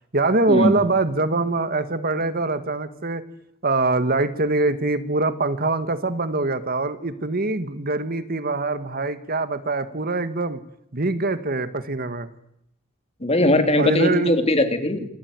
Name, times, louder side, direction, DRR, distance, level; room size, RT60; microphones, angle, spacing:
voice 1, 0.1-3.2 3.6-10.6 10.9-12.3 13.8-14.4, right 2 dB, 45° right, 11 dB, 1.7 m, -23 dB
voice 2, 13.2-15.1, left 1 dB, 30° left, 7 dB, 3.4 m, -20 dB
27.5 x 20.5 x 9.6 m, 0.76 s
head